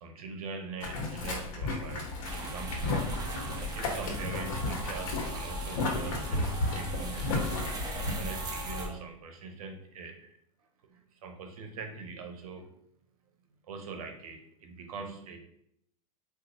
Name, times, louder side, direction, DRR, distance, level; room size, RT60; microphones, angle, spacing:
voice 1, 0.0-3.0 3.6-7.5 8.1-10.4 10.9-12.7 13.6-15.4, right 4 dB, 85° right, 4 dB, 0.8 m, -43 dB
Boiling, 0.8-8.1, left 2 dB, 70° left, 1.0 m, -34 dB
sound 1, 2.2-8.9, right 1 dB, 20° right, 0.9 m, -37 dB
3.9 x 2.5 x 2.6 m, 0.71 s
supercardioid pair, 120°, 18 cm